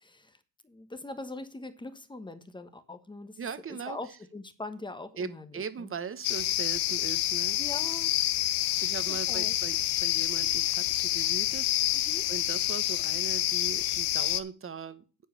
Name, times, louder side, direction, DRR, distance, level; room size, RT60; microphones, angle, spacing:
voice 1, 0.0-0.4 0.6-3.5 3.8-5.9 7.6-8.1 9.3-9.6 12.1-12.3, left 2 dB, 10° left, 1.3 m, -42 dB
voice 2, 3.4-4.2 5.2-7.6 8.8-11.7 12.3-15.0, right 6 dB, 35° right, 1.2 m, -39 dB
sound 1, 6.2-14.4, left 14 dB, 85° left, 0.9 m, -28 dB
10.5 x 4.8 x 7.2 m
cardioid pair, 105°, 39 cm